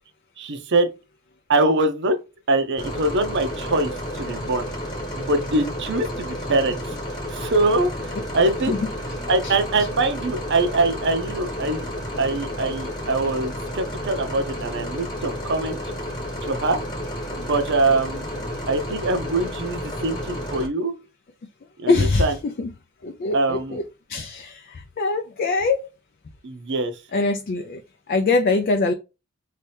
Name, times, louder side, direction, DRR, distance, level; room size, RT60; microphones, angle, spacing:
voice 1, 0.4-0.9 1.5-2.2 2.5-4.7 5.2-6.9 7.3-8.7 9.3-11.9 12.2-15.8 16.4-16.8 17.3-18.3 18.7-20.9 21.8-22.3 23.3-23.8 26.4-27.0, right 2 dB, 55° right, 0.7 m, -23 dB
sound 1, 2.8-20.7, equal, 20° left, 1.2 m, -31 dB
voice 2, 21.9-22.7 23.0-23.8 24.1-25.9 27.1-27.8 28.1-28.9, left 3 dB, 45° left, 0.4 m, -23 dB
3.2 x 2.8 x 3.2 m
head